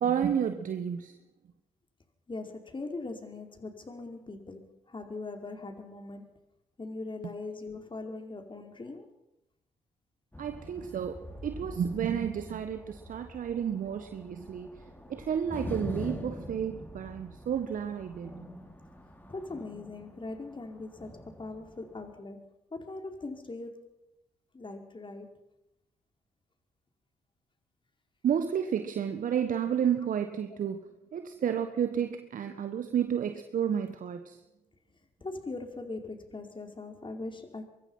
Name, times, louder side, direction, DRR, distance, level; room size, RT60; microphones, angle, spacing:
voice 1, 0.0-1.1 10.4-11.2 11.4-14.8 15.1-18.3 28.2-34.4, right 8 dB, 55° right, 9 dB, 1.5 m, -31 dB
voice 2, 2.3-6.4 6.8-9.1 19.3-21.1 21.4-23.9 24.5-25.4 35.2-37.7, left 3 dB, 30° left, 5 dB, 4.8 m, -41 dB
sound 1, 10.3-22.1, left 1 dB, 10° left, 5.3 m, -44 dB
24.0 x 21.5 x 5.7 m, 0.88 s
hypercardioid pair, 40°, 16 cm